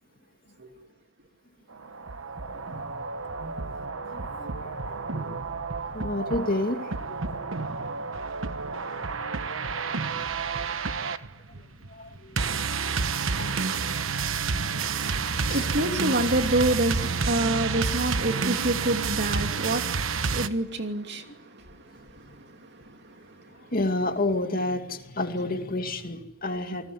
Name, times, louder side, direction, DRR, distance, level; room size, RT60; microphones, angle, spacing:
sound 1, 1.7-20.5, right 5 dB, 85° right, 1.2 m, -30 dB
voice 1, 2.5-3.0 3.2-3.4 4.1-5.4 5.9-7.7 8.6-9.1 9.9-10.1 11.6-12.5 13.4-13.7 14.6-15.2 15.5-15.6 21.3-21.4 22.2-22.3 23.5-26.9, left 2 dB, 45° left, 2.4 m, -32 dB
voice 2, 15.0-24.2 25.3-25.4, right 1 dB, 60° right, 2.8 m, -29 dB
28.5 x 20.0 x 9.5 m
head